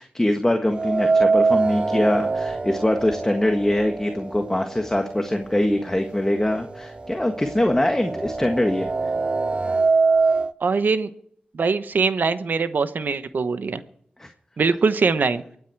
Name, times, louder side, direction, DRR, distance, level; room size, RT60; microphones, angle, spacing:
voice 1, 0.0-8.9 14.2-14.3, left 1 dB, 15° left, 5 dB, 1.6 m, -23 dB
sound 1, 0.7-4.8 5.1-5.2 6.2-6.3 6.7-10.5, right 4 dB, 35° right, 0.6 m, -23 dB
voice 2, 10.6-11.1 11.5-13.8 14.6-15.4, right 4 dB, 70° right, 12 dB, 1.0 m, -22 dB
23.5 x 9.3 x 4.7 m, 0.65 s
cardioid pair, 50°, 3 cm